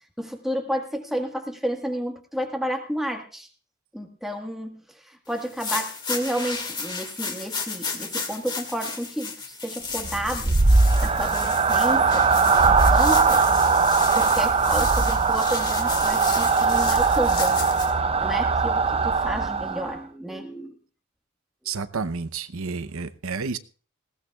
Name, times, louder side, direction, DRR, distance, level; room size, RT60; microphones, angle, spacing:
voice 1, 0.2-3.5 3.9-10.5 11.0-13.4 14.1-20.8, equal, ahead, 1.5 m, -31 dB
sound 1, 5.4-17.9, left 4 dB, 20° left, 2.1 m, -33 dB
sound 2, 10.0-20.0, right 4 dB, 30° right, 0.6 m, -20 dB
voice 2, 21.7-23.6, right 4 dB, 75° right, 0.8 m, -30 dB
19.5 x 17.5 x 2.4 m
head